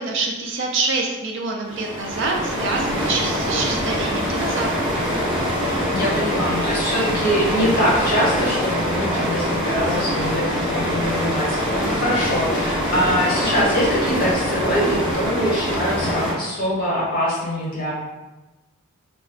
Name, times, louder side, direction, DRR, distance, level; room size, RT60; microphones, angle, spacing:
voice 1, 0.0-4.9, right 3 dB, 55° right, 0 dB, 0.4 m, -26 dB
sound 1, 1.6-16.3, equal, ahead, 0.8 m, -24 dB
voice 2, 5.9-17.9, equal, 40° left, -6 dB, 0.9 m, -23 dB
2.2 x 2.1 x 3.7 m, 1.1 s
head